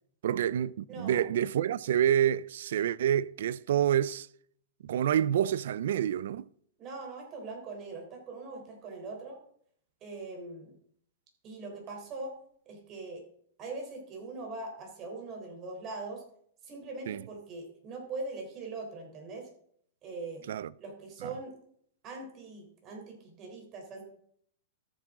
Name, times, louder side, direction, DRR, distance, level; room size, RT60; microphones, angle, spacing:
voice 1, 0.2-4.3 4.8-6.4 17.1-17.2 20.5-20.7 21.2-21.3, right 10 dB, 70° right, 0.4 m, -28 dB
voice 2, 0.9-1.2 6.8-9.4 10.0-10.8 11.4-12.3 12.7-13.2 13.6-16.2 16.6-19.5 20.0-20.5 20.8-21.6 22.0-24.0, right 3 dB, 30° right, 3.7 m, -41 dB
13.5 x 7.5 x 3.8 m
hypercardioid pair, 145°, 0 cm